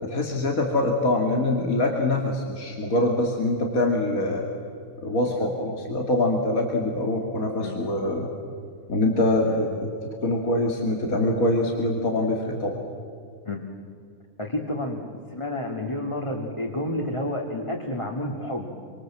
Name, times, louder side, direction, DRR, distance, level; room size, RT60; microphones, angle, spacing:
voice 1, 0.0-4.4 5.0-8.3 8.9-9.7 10.2-12.8, left 2 dB, 70° left, 1 dB, 2.9 m, -24 dB
voice 2, 14.4-15.0 15.3-18.7, left 1 dB, 20° left, 0 dB, 2.4 m, -30 dB
27.0 x 25.5 x 7.6 m, 2.4 s
omnidirectional pair, 1.5 m